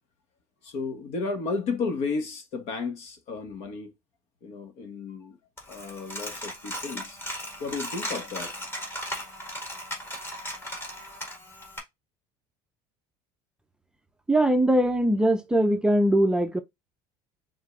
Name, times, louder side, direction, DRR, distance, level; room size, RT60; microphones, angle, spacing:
voice 1, 0.6-3.9 4.4-5.4 5.7-7.2 7.6-8.6, left 4 dB, 65° left, 1.2 m, -33 dB
Coin (dropping), 5.6-11.8, equal, 20° left, 1.7 m, -37 dB
voice 2, 14.3-16.6, right 1 dB, 5° right, 0.5 m, -21 dB
4.9 x 3.7 x 2.4 m
cardioid pair, 135°, 12 cm